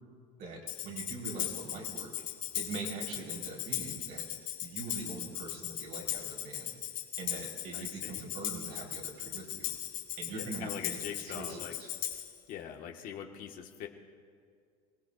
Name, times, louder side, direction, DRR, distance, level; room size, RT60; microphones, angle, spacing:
voice 1, 0.4-2.1 2.5-4.2 4.6-6.7 7.2-9.7 10.2-11.6, right 3 dB, 55° right, -1 dB, 4.0 m, -42 dB
Tambourine, 0.7-12.4, left 12 dB, 75° left, 2.7 m, -38 dB
voice 2, 7.7-8.2 10.3-11.8 12.5-13.9, left 9 dB, 50° left, 2 dB, 1.6 m, -43 dB
27.5 x 17.5 x 2.5 m, 2.1 s
supercardioid pair, 125°, 18 cm